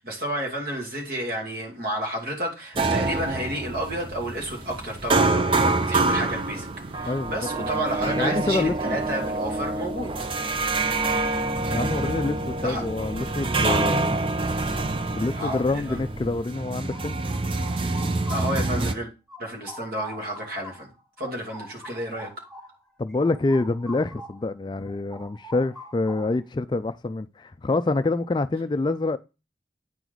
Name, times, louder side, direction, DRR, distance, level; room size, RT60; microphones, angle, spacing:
voice 1, 0.0-6.7 6.9-10.1 12.6-12.8 13.6-13.8 15.4-16.0 18.3-19.1 19.4-20.9 21.2-22.3, right 1 dB, 55° right, 2.6 m, -31 dB
sound 1, 2.8-19.0, right 2 dB, 30° right, 0.6 m, -26 dB
voice 2, 7.1-7.8 8.1-9.0 11.7-14.2 15.2-17.1 23.0-29.2, left 2 dB, 25° left, 0.3 m, -26 dB
sound 2, 16.7-19.0 19.3-24.5 24.8-26.5, equal, ahead, 0.9 m, -44 dB
9.1 x 4.6 x 3.9 m
head